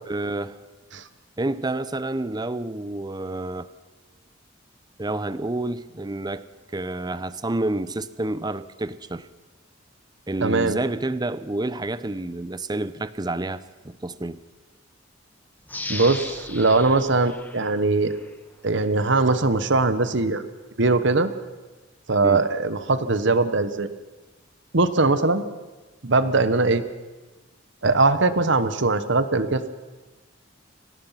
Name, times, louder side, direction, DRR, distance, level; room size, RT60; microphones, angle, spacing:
voice 1, 0.1-0.6 1.4-3.7 5.0-6.4 6.7-9.3 10.3-14.4 22.2-22.5, right 2 dB, 20° right, 15 dB, 0.7 m, -29 dB
voice 2, 10.4-10.8 15.9-18.1 18.6-20.4 20.8-21.3 22.1-23.9 24.7-25.4 26.0-26.8 27.8-29.7, right 3 dB, 65° right, 12 dB, 1.2 m, -21 dB
sound 1, 15.7-18.4 18.8-18.9, left 2 dB, 10° left, 1.5 m, -37 dB
25.5 x 17.5 x 5.8 m, 1.2 s
head